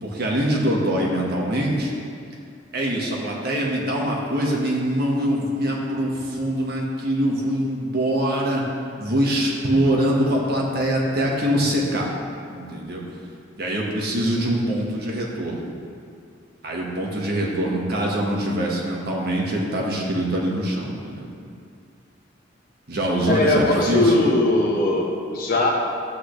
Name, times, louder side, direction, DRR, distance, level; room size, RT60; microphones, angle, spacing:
voice 1, 0.0-1.9 2.7-8.6 9.0-12.1 12.5-13.0 13.6-15.7 16.6-21.3 22.9-24.1, right 1 dB, 55° right, -2 dB, 1.6 m, -23 dB
voice 2, 23.3-25.7, left 2 dB, 50° left, -1 dB, 1.3 m, -20 dB
12.5 x 8.4 x 3.3 m, 2.4 s
head